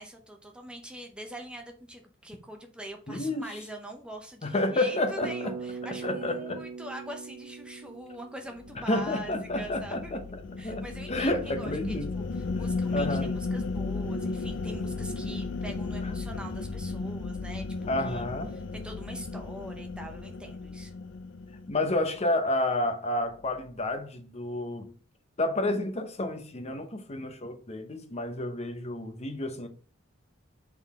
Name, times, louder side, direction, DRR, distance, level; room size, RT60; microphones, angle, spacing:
voice 1, 0.0-10.2 10.6-18.3 18.5-20.9, right 1 dB, 5° right, 0.6 m, -43 dB
voice 2, 3.1-3.5 4.4-5.5 6.0-6.6 8.9-10.2 10.6-12.1 12.9-13.3 16.0-16.1 17.9-18.5 21.7-24.9 25.4-29.7, left 1 dB, 35° left, 0.8 m, -30 dB
Bass guitar, 5.2-9.3, right 5 dB, 85° right, 0.4 m, -41 dB
sound 1, 8.6-22.1, left 3 dB, 65° left, 0.5 m, -35 dB
7.8 x 3.8 x 3.6 m
head